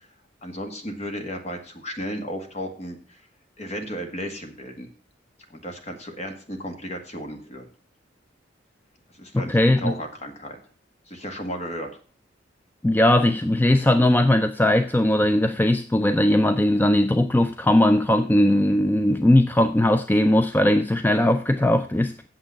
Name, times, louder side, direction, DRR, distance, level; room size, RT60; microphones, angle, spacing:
voice 1, 0.4-3.2 3.6-4.9 5.5-7.7 9.1-10.6 11.1-11.9, equal, 35° left, 1.9 m, -34 dB
voice 2, 9.3-9.9 12.8-22.2, left 1 dB, 10° left, 0.4 m, -19 dB
8.7 x 7.2 x 5.7 m
head